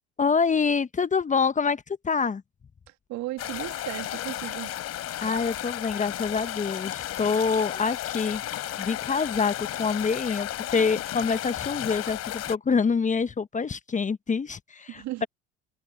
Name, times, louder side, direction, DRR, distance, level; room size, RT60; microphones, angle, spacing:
voice 1, 0.2-2.4 5.2-8.4 8.8-15.3, left 5 dB, 20° left, 1.2 m, -26 dB
voice 2, 2.9-4.7 14.9-15.3, right 17 dB, 55° right, 2.3 m, -36 dB
sound 1, 3.4-12.5, left 13 dB, 45° left, 3.3 m, -33 dB
hypercardioid pair, 75°, 34 cm